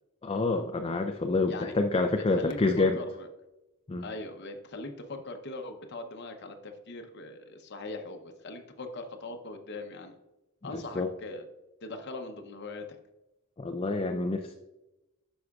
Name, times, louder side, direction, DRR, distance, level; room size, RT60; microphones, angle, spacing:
voice 1, 0.2-3.0 3.9-4.0 10.7-11.1 13.6-14.5, left 3 dB, 25° left, 5 dB, 0.4 m, -27 dB
voice 2, 2.2-3.3 4.0-10.2 10.6-11.4 11.8-12.8, left 2 dB, 50° left, 5 dB, 0.7 m, -40 dB
9.6 x 6.2 x 2.4 m, 0.98 s
head